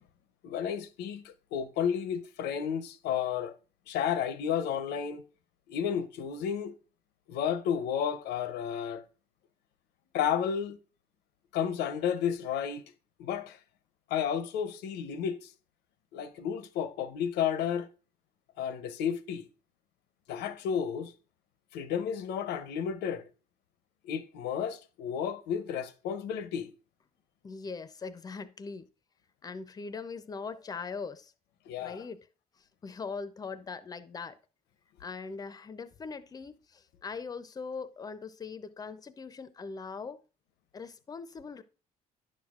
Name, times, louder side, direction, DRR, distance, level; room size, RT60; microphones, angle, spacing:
voice 1, 0.4-3.5 3.9-5.2 5.7-6.7 7.3-9.0 10.1-10.8 11.5-12.8 13.2-13.6 14.1-15.5 16.1-17.9 18.6-19.5 20.3-21.1 21.7-23.2 24.0-26.7 31.7-32.0, left 8 dB, 80° left, 0.7 m, -32 dB
voice 2, 27.4-28.9 29.4-31.3 31.8-32.3 32.8-34.4 35.0-40.2 40.7-41.6, left 5 dB, 20° left, 0.5 m, -41 dB
9.9 x 6.4 x 2.4 m
cardioid pair, 110°, 17 cm